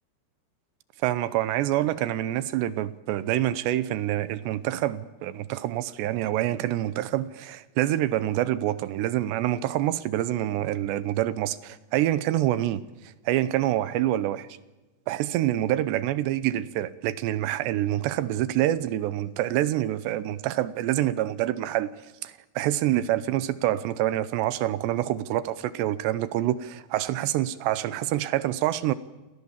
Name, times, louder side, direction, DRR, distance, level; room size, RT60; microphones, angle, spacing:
voice 1, 1.0-12.8 13.3-14.5 15.1-21.9 22.2-28.9, right 13 dB, 75° right, 2.9 m, -26 dB
29.0 x 20.5 x 7.3 m
omnidirectional pair, 5.2 m